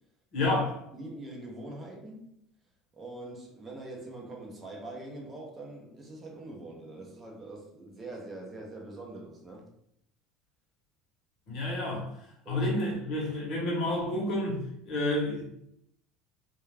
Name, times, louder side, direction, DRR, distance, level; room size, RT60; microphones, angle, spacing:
voice 1, 0.3-0.8 11.5-12.1 12.5-15.5, left 1 dB, 45° left, -2 dB, 0.9 m, -30 dB
voice 2, 0.9-2.3 2.9-9.7 12.4-12.7, right 2 dB, 15° right, 0 dB, 0.6 m, -43 dB
2.2 x 2.2 x 3.2 m, 0.74 s
cardioid pair, 165°, 0 cm